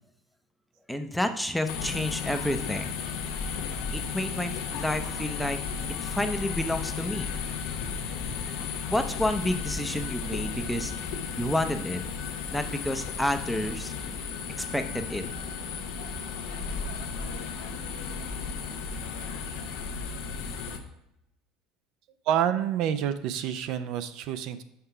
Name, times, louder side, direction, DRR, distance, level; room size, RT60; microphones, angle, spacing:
voice 1, 0.9-3.0 3.9-5.6 5.9-7.5 8.9-10.9 11.4-12.0 12.5-13.9 14.6-15.2, left 1 dB, 5° left, 7 dB, 0.6 m, -30 dB
sound 1, 1.7-20.8, left 5 dB, 80° left, 0.9 m, -34 dB
voice 2, 22.3-24.6, right 10 dB, 65° right, 11 dB, 0.5 m, -28 dB
5.8 x 4.7 x 5.5 m, 0.84 s
supercardioid pair, 115°, 0 cm